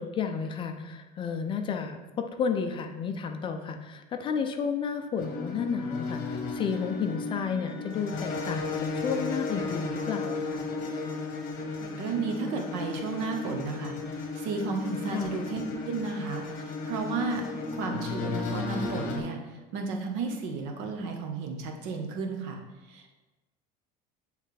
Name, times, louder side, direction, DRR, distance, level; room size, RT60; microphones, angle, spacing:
voice 1, 0.0-10.7 15.1-15.3, left 6 dB, 30° left, 6 dB, 0.4 m, -32 dB
sound 1, 5.2-19.2, left 4 dB, 50° left, 1.1 m, -34 dB
voice 2, 11.8-17.5 17.7-22.6 22.9-23.1, right 4 dB, 75° right, 3 dB, 1.0 m, -33 dB
8.7 x 3.3 x 3.2 m, 1.1 s
cardioid pair, 150°, 18 cm